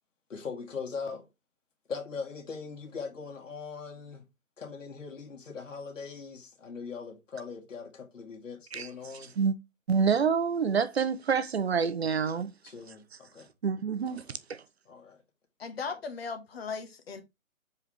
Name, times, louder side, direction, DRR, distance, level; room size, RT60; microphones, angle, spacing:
voice 1, 0.3-1.3 1.9-4.2 4.6-9.3 12.6-13.5 14.1-14.4 14.9-15.2 15.9-16.0, left 5 dB, 65° left, 2.5 m, -41 dB
voice 2, 9.9-12.5 13.6-14.2 14.5-14.6, right 6 dB, 50° right, 0.7 m, -27 dB
voice 3, 15.6-17.2, left 5 dB, 45° left, 1.7 m, -37 dB
6.9 x 4.9 x 3.3 m
figure-of-eight pair, 145°, 41 cm